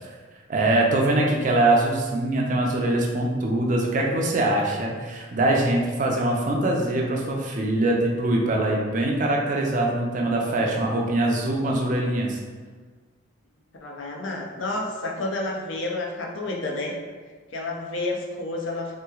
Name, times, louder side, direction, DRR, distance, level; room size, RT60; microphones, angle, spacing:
voice 1, 0.5-12.4, right 1 dB, 40° right, -1 dB, 0.4 m, -23 dB
voice 2, 13.8-17.0 17.5-18.9, left 2 dB, 65° left, -1 dB, 0.5 m, -30 dB
3.2 x 2.9 x 2.3 m, 1.5 s
head